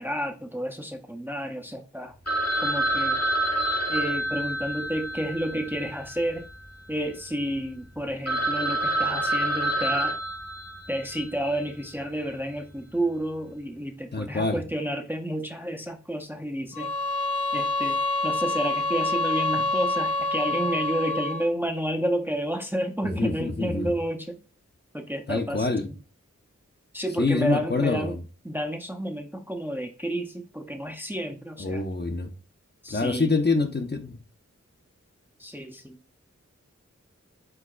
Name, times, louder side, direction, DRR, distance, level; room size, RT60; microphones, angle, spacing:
voice 1, 0.0-2.1 2.6-3.2 3.9-6.5 6.9-10.2 10.9-16.9 17.5-24.4 24.9-26.0 26.9-28.2 28.4-31.8 32.8-33.3 35.4-36.0, right 1 dB, 5° right, 0.6 m, -30 dB
Telephone, 2.3-6.6 6.9-7.0 7.5-7.6 8.0-8.1 8.3-11.2, right 1 dB, 60° left, 1.1 m, -27 dB
voice 2, 14.1-14.6 23.0-23.9 25.3-25.9 27.2-28.2 31.6-32.3 32.9-34.2, left 3 dB, 35° left, 0.7 m, -26 dB
sound 1, 16.7-21.5, left 2 dB, 80° left, 1.0 m, -27 dB
4.7 x 4.0 x 2.3 m
wide cardioid pair, 55°, 29 cm